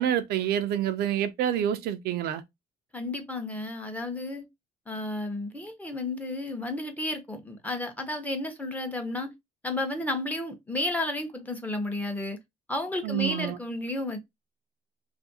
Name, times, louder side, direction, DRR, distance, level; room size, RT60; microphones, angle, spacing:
voice 1, 0.0-2.4 13.0-13.6, right 10 dB, 70° right, 0.4 m, -27 dB
voice 2, 2.9-4.4 4.9-9.3 9.6-12.4 12.7-14.2, left 2 dB, 10° left, 0.7 m, -32 dB
2.6 x 2.5 x 2.6 m
cardioid pair, 110°, 17 cm